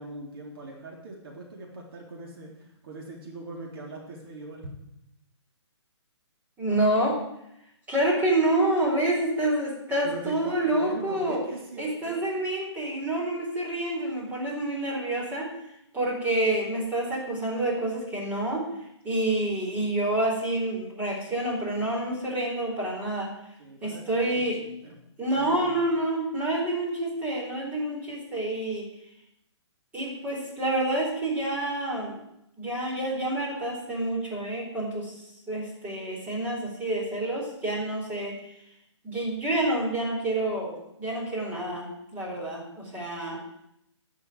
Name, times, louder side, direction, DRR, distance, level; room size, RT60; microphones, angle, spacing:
voice 1, 0.0-4.7 10.0-12.2 23.6-25.0 25.3-25.8, right 3 dB, 50° right, -1 dB, 3.7 m, -41 dB
voice 2, 6.6-7.2 7.9-11.4 11.8-15.5 15.9-18.7 19.0-23.3 23.8-24.6 25.2-28.9 29.9-32.2 32.6-35.2 35.5-38.3 39.0-43.4, right 1 dB, 10° right, -4 dB, 4.3 m, -28 dB
12.0 x 6.8 x 9.4 m, 0.81 s
hypercardioid pair, 150°, 15 cm